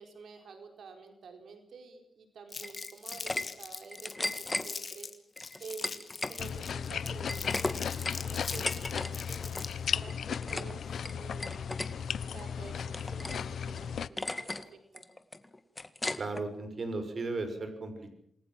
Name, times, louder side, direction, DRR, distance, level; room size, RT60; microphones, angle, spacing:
voice 1, 0.0-5.1 5.6-11.6 12.3-14.6 14.9-15.0, right 5 dB, 90° right, 5 dB, 4.5 m, -49 dB
Crumpling crinkling, 2.5-9.9, left 4 dB, 40° left, 3.3 m, -42 dB
sound 1, 2.6-3.4 3.8-4.7 5.4-6.4 6.7-9.1 9.4-9.7 10.1-10.7 11.0-11.9 12.3-13.4 13.8-13.9 14.2-14.6 15.0-16.4, left 2 dB, 20° left, 1.8 m, -36 dB
sound 2, 6.4-14.1, left 7 dB, 85° left, 1.0 m, -36 dB
voice 2, 16.2-18.1, right 3 dB, 45° right, 7 dB, 6.0 m, -36 dB
28.0 x 21.0 x 7.6 m, 0.70 s
wide cardioid pair, 140°, 0 cm